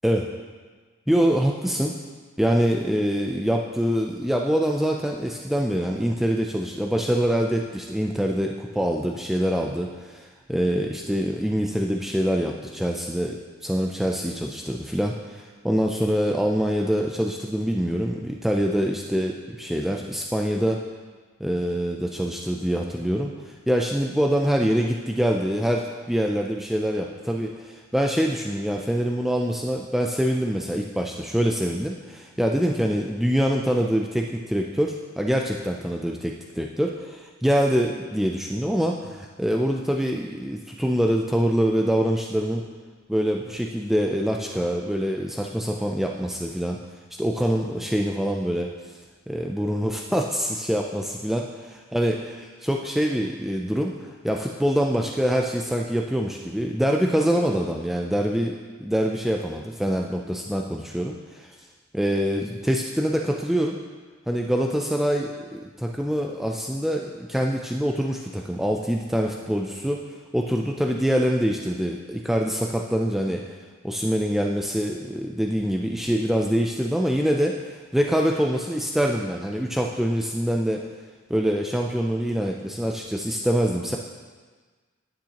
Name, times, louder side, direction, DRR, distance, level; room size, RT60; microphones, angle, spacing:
voice 1, 1.1-1.9 2.4-13.4 13.6-20.8 21.4-42.6 43.1-46.8 47.2-48.7 49.3-51.4 51.9-52.2 52.6-61.6 61.9-63.8 64.3-70.1 70.3-73.6 73.8-80.8 81.3-84.0, equal, ahead, 0 dB, 0.4 m, -25 dB
10.0 x 8.8 x 2.9 m, 1.4 s
head